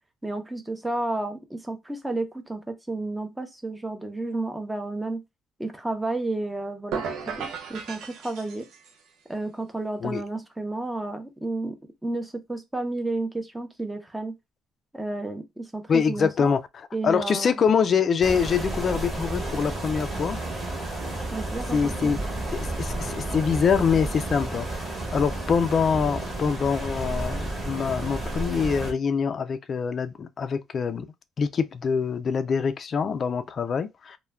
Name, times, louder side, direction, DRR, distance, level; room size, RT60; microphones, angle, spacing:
voice 1, 0.2-5.2 5.6-8.7 9.3-14.3 14.9-16.5 16.9-17.6 21.3-22.1, right 2 dB, 10° right, 0.6 m, -32 dB
sound 1, 6.9-9.0, right 6 dB, 75° right, 0.4 m, -35 dB
voice 2, 15.9-20.4 21.7-22.2 22.5-24.8 25.1-31.1 31.4-34.2, left 6 dB, 40° left, 0.3 m, -25 dB
sound 2, 18.2-28.9, right 2 dB, 25° right, 1.0 m, -31 dB
2.2 x 2.1 x 3.2 m
cardioid pair, 110°, 0 cm